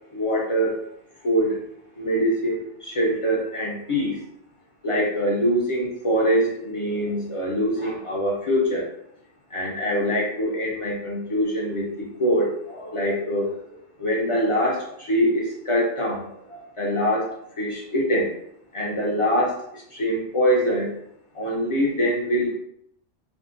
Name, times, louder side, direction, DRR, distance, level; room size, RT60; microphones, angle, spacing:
voice 1, 0.1-0.8 1.2-1.6 2.0-4.2 4.8-8.9 9.5-13.5 14.0-17.3 17.6-18.3 18.7-20.9 21.4-22.6, equal, 40° left, -3 dB, 0.5 m, -24 dB
3.5 x 2.1 x 2.5 m, 0.72 s
omnidirectional pair, 1.2 m